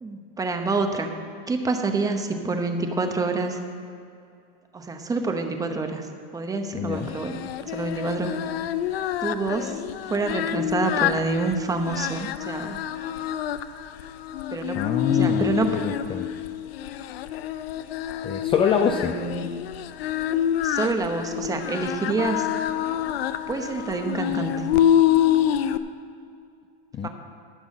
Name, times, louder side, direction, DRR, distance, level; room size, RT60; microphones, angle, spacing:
voice 1, 0.0-1.1 1.5-3.6 4.7-6.1 6.3-7.4 7.7-8.4 9.2-12.8 14.5-14.8 15.1-15.8 18.8-19.5 20.6-22.5 23.5-24.7 27.0-27.1, right 3 dB, 10° right, 5 dB, 0.9 m, -27 dB
voice 2, 6.7-7.1 14.7-16.3 18.2-19.1 26.9-27.1, left 7 dB, 20° left, 6 dB, 0.4 m, -25 dB
Singing, 7.0-25.8, left 11 dB, 85° left, 0.6 m, -27 dB
13.5 x 6.1 x 7.4 m, 2.5 s
supercardioid pair, 135°, 29 cm